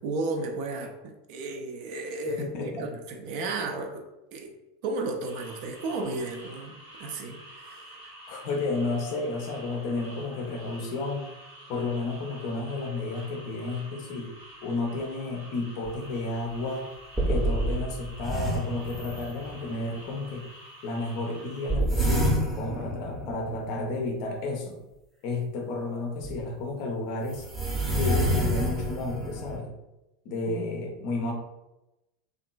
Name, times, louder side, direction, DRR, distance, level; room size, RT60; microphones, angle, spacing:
voice 1, 0.0-4.0 4.3-4.5 4.8-8.1 30.5-30.7, right 2 dB, 50° right, 4 dB, 0.4 m, -34 dB
voice 2, 2.4-2.9 8.3-11.3 11.7-14.3 14.6-16.9 17.3-20.5 20.8-24.8 25.2-27.4 27.9-29.8 30.2-31.3, left 2 dB, 50° left, 2 dB, 0.5 m, -32 dB
sound 1, 5.2-21.8, right 1 dB, 70° right, 0.9 m, -48 dB
sound 2, 15.9-16.0 16.5-16.6 17.2-19.7 21.7-24.0 26.2-26.3 27.3-29.6, right 1 dB, 15° right, 0.7 m, -28 dB
2.9 x 2.3 x 2.2 m, 0.97 s
figure-of-eight pair, 80°, 0 cm